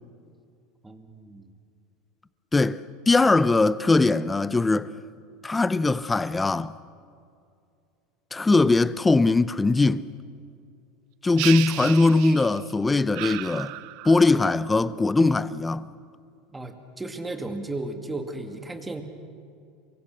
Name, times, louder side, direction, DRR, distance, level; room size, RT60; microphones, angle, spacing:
voice 1, 0.8-1.5 16.5-19.0, right 2 dB, 10° right, 2.3 m, -35 dB
voice 2, 3.1-4.9 5.4-6.7 8.3-10.1 11.2-13.7 14.0-15.9, left 3 dB, 15° left, 0.7 m, -21 dB
sound 1, 11.4-12.7 13.1-14.4, right 20 dB, 65° right, 0.5 m, -33 dB
27.5 x 24.0 x 6.5 m
supercardioid pair, 125°, 0 cm